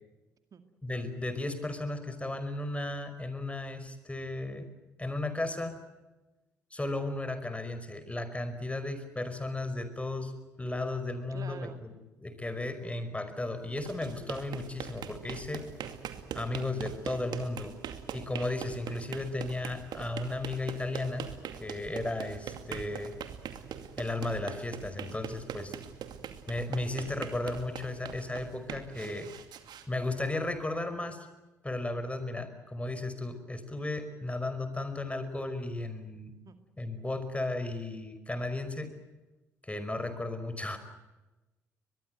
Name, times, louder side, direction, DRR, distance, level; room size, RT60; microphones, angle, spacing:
voice 1, 0.8-4.7 5.0-5.8 6.7-10.3 10.6-15.7 16.3-17.7 18.1-21.3 21.6-23.2 24.0-25.8 26.5-29.3 29.9-31.3 31.6-36.3 36.8-38.9 39.6-40.8, left 2 dB, 15° left, 10 dB, 5.3 m, -35 dB
voice 2, 11.3-11.8 29.0-29.2 36.5-36.6, right 6 dB, 50° right, 8 dB, 2.2 m, -46 dB
sound 1, 13.6-30.6, right 8 dB, 65° right, 2.4 m, -42 dB
22.5 x 22.5 x 9.2 m, 1.1 s
hypercardioid pair, 45°, 8 cm